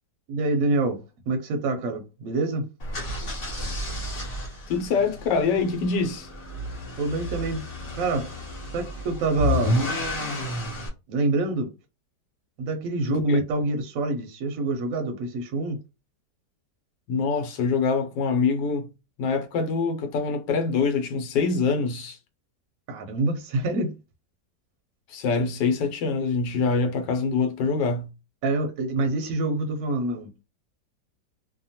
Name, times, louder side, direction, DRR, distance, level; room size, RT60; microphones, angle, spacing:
voice 1, 0.3-2.7 7.0-7.6 7.9-8.3 8.7-9.8 11.1-11.7 12.6-15.8 22.9-23.9 28.4-30.3, right 2 dB, 70° right, 0.9 m, -26 dB
sound 1, 2.8-10.9, left 1 dB, 45° left, 0.8 m, -31 dB
voice 2, 4.7-6.3 13.1-13.4 17.1-18.9 19.2-22.2 25.1-28.1, left 4 dB, 85° left, 1.3 m, -25 dB
2.8 x 2.2 x 2.7 m
omnidirectional pair, 1.9 m